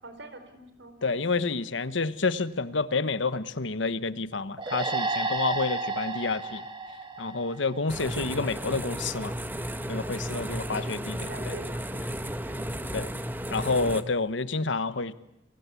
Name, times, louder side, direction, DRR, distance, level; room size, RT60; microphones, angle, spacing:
voice 1, 0.0-1.3 10.3-12.1 12.5-12.8, right 2 dB, 65° right, 9 dB, 4.4 m, -45 dB
voice 2, 1.0-6.6 7.2-9.3 9.9-11.5 12.9-13.1 13.5-15.1, left 3 dB, 70° left, 14 dB, 1.1 m, -29 dB
sound 1, 4.6-8.0, right 3 dB, 25° right, 2.7 m, -32 dB
Old Ceiling Fan Running, 7.9-14.0, equal, 10° right, 1.2 m, -34 dB
29.5 x 23.0 x 8.4 m, 0.83 s
head